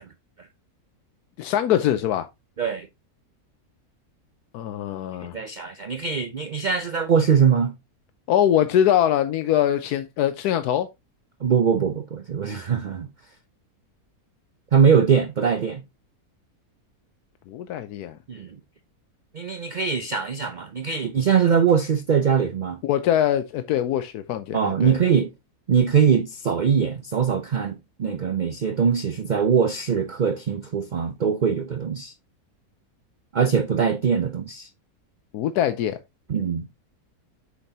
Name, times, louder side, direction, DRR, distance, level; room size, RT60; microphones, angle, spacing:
voice 1, 1.4-2.3 4.5-5.4 8.3-10.9 17.5-18.2 22.8-25.0 35.3-36.0, left 10 dB, 85° left, 1.2 m, -23 dB
voice 2, 5.3-7.7 11.4-13.1 14.7-15.8 18.3-18.6 19.3-22.8 24.5-25.3 25.7-32.1 33.3-34.7 36.3-36.6, right 7 dB, 65° right, 0.4 m, -22 dB
8.2 x 5.9 x 2.7 m
omnidirectional pair, 1.6 m